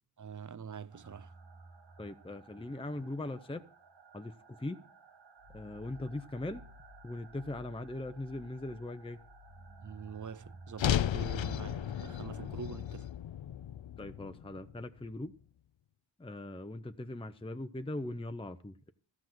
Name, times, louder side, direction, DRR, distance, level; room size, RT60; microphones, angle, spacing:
voice 1, 0.2-1.3 9.8-13.1, right 7 dB, 45° right, 0.5 m, -45 dB
sound 1, 0.9-12.5, right 2 dB, 70° right, 1.6 m, -55 dB
voice 2, 2.0-3.6 4.1-4.8 5.5-6.6 7.0-9.2 14.0-15.3 16.2-18.9, left 1 dB, 10° left, 0.7 m, -40 dB
sound 2, 10.8-15.1, left 10 dB, 80° left, 0.5 m, -34 dB
14.0 x 6.1 x 7.8 m
wide cardioid pair, 45°, 45 cm